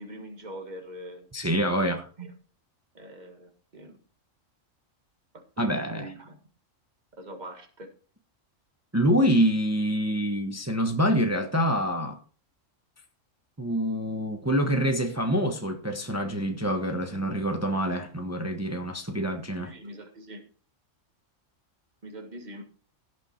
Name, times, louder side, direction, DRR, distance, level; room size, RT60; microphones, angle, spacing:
voice 1, 0.0-1.3 2.2-2.3 2.9-4.0 5.3-6.4 7.2-7.9 19.6-20.4 22.0-22.7, right 1 dB, 35° right, 1.9 m, -43 dB
voice 2, 1.3-2.1 5.6-6.1 8.9-12.2 13.6-19.7, equal, 15° right, 1.0 m, -26 dB
17.0 x 6.3 x 4.4 m
omnidirectional pair, 1.3 m